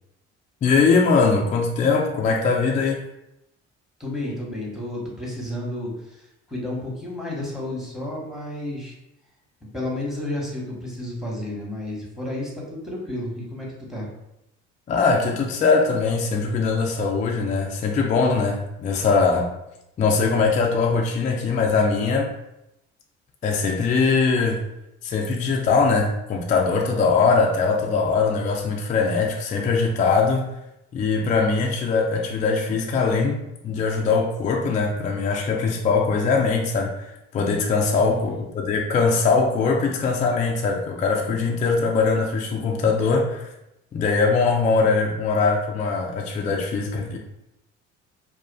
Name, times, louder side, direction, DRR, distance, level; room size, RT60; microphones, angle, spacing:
voice 1, 0.6-3.0 14.9-19.5 20.0-22.3 23.4-24.6 25.0-30.5 30.9-43.5 43.9-47.2, left 4 dB, 25° left, 1 dB, 0.3 m, -21 dB
voice 2, 4.0-9.0 9.6-14.1 37.9-38.4, left 1 dB, ahead, -3 dB, 0.9 m, -32 dB
2.3 x 2.3 x 2.2 m, 0.86 s
figure-of-eight pair, 50°, 35 cm